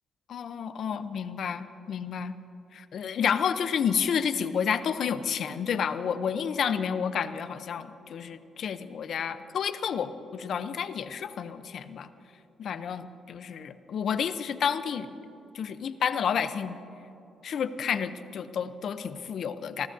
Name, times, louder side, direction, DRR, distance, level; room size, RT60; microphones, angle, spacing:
voice 1, 0.3-2.4 2.7-12.1 12.6-15.1 15.5-16.8 17.4-19.9, left 7 dB, 60° left, 12 dB, 0.6 m, -30 dB
25.5 x 14.5 x 2.7 m, 2.9 s
cardioid pair, 90°, 0 cm